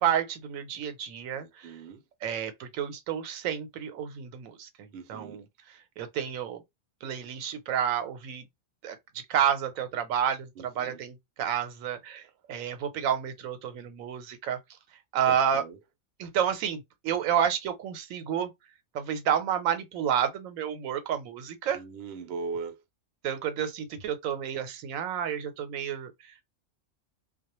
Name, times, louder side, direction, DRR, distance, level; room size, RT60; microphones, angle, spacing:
voice 1, 0.0-1.8 2.2-6.6 7.0-8.4 8.8-14.6 15.1-15.6 16.2-18.5 18.9-21.8 23.2-26.4, right 9 dB, 90° right, 1.0 m, -30 dB
voice 2, 1.3-2.0 4.9-5.4 10.6-11.0 15.3-15.8 21.7-22.8, right 4 dB, 60° right, 0.7 m, -39 dB
2.2 x 2.1 x 2.9 m
omnidirectional pair, 1.4 m